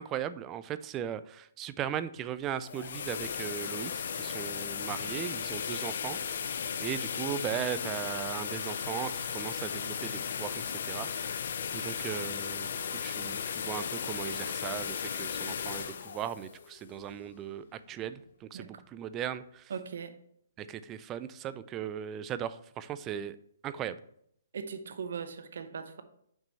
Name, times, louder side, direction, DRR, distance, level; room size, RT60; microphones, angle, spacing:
voice 1, 0.0-6.2 6.8-11.4 11.7-19.6 20.6-23.4 23.6-24.0, right 10 dB, 20° right, 0.3 m, -38 dB
sound 1, 2.5-17.4, left 7 dB, 60° left, 0.5 m, -36 dB
voice 2, 19.7-20.1 24.5-26.0, right 6 dB, 70° right, 0.7 m, -39 dB
6.0 x 5.3 x 4.1 m
hypercardioid pair, 150°, 0 cm